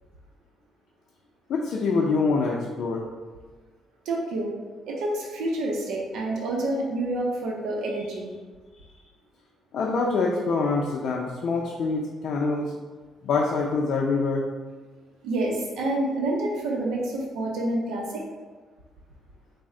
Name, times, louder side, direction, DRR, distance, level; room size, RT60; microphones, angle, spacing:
voice 1, 1.5-3.0 9.7-12.7 13.2-14.5, left 4 dB, 70° left, -2 dB, 0.4 m, -25 dB
voice 2, 4.1-4.5 4.9-8.4 15.2-18.3, right 1 dB, 90° right, -1 dB, 0.5 m, -28 dB
4.1 x 2.0 x 3.6 m, 1.4 s
cardioid pair, 90°, 0 cm